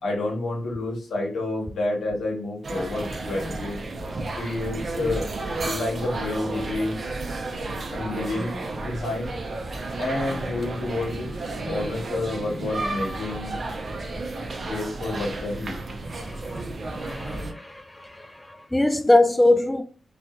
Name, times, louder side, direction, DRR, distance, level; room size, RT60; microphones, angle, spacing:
voice 1, 0.0-3.8 4.4-5.3 5.6-7.0 7.9-9.3 10.0-11.3 11.7-13.6 14.7-15.8, left 2 dB, 85° left, 0.9 m, -29 dB
sound 1, 2.6-17.5, right 2 dB, 60° right, 0.5 m, -32 dB
voice 2, 16.2-16.6 16.9-19.8, left 2 dB, 20° left, 0.3 m, -22 dB
2.7 x 2.4 x 2.2 m
supercardioid pair, 40°, 0 cm